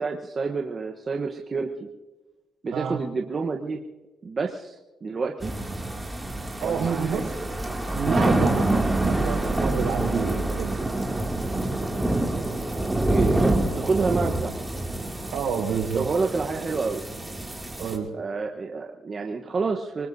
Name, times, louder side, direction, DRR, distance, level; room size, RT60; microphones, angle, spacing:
voice 1, 0.0-1.9 2.6-3.8 4.2-4.8 5.0-5.5 6.6-7.3 13.1-14.6 15.9-17.0 18.1-20.1, right 4 dB, 40° right, 2 dB, 1.1 m, -28 dB
sound 1, 5.4-18.0, right 2 dB, 10° right, 2.5 m, -26 dB
voice 2, 6.6-7.5 7.9-10.7 15.3-16.0 17.8-18.1, right 7 dB, 75° right, -1 dB, 5.1 m, -29 dB
25.0 x 19.0 x 2.7 m, 1.1 s
cardioid pair, 90°, 0 cm